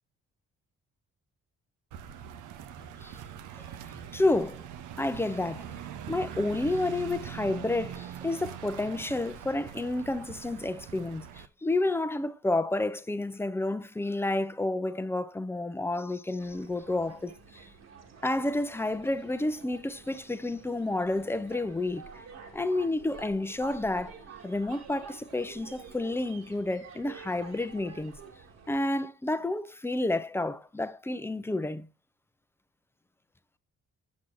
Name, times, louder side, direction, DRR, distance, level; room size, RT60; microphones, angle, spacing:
sound 1, 1.9-11.5, right 9 dB, 85° right, 0.7 m, -42 dB
voice 1, 4.1-4.6 5.0-5.7 6.1-17.6 18.2-22.0 22.5-24.2 24.4-28.1 28.7-31.9, left 2 dB, 10° left, 0.6 m, -30 dB
sound 2, 16.4-28.8, right 5 dB, 60° right, 1.7 m, -49 dB
7.2 x 6.1 x 2.5 m
cardioid pair, 90°, 30 cm